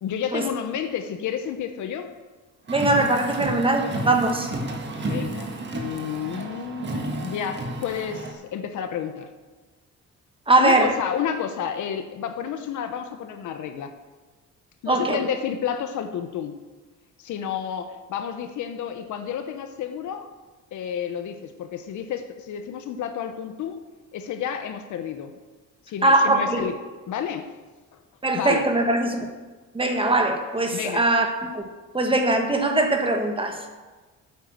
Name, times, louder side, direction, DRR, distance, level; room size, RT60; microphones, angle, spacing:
voice 1, 0.0-2.1 5.0-9.3 10.6-13.9 14.8-16.5 17.2-20.3 20.7-23.8 24.1-25.4 25.9-26.8 27.1-27.5 28.3-28.7 30.7-31.1, left 8 dB, 80° left, 8 dB, 1.0 m, -30 dB
voice 2, 2.7-4.5 10.5-10.9 14.9-15.2 26.0-26.6 28.2-29.3 29.7-31.3 31.5-31.7 31.9-33.6, right 2 dB, 20° right, 4 dB, 1.3 m, -21 dB
Car, 2.7-8.3, right 2 dB, 40° right, 1.6 m, -31 dB
9.1 x 8.4 x 7.7 m, 1.3 s
cardioid pair, 130°, 29 cm